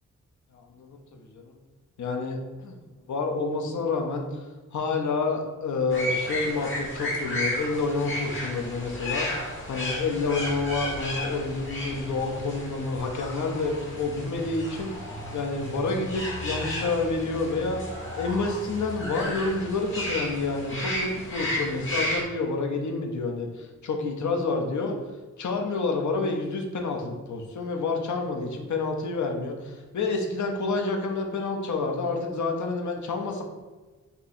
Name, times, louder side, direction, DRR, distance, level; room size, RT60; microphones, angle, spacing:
voice 1, 2.0-2.8 3.1-4.3 4.7-9.3 9.7-14.9 15.3-17.8 18.2-25.0 25.4-33.4, left 3 dB, 65° left, 3 dB, 0.7 m, -28 dB
sound 1, 5.9-22.2, left 1 dB, 40° left, 1.0 m, -33 dB
3.6 x 2.8 x 4.2 m, 1.3 s
wide cardioid pair, 150°, 31 cm